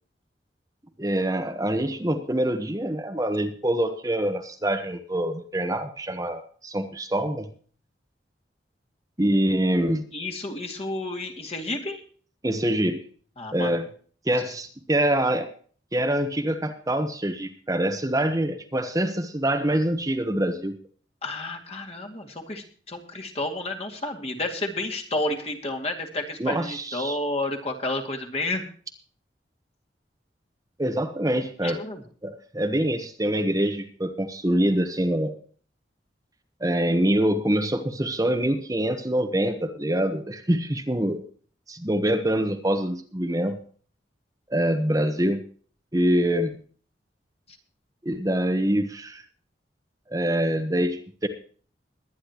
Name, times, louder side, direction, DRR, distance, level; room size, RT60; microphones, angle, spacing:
voice 1, 1.0-7.5 9.2-10.0 12.4-13.0 13.5-13.9 14.2-15.5 15.9-20.7 26.4-27.2 30.8-31.8 32.2-35.4 36.6-41.2 41.7-43.6 44.5-45.4 45.9-46.5 48.0-49.2 50.1-51.3, right 1 dB, 20° right, 6 dB, 1.1 m, -25 dB
voice 2, 10.1-12.0 13.4-13.7 21.2-28.6 31.6-32.0, left 2 dB, 35° left, 3 dB, 2.3 m, -31 dB
22.0 x 10.0 x 3.0 m, 0.44 s
head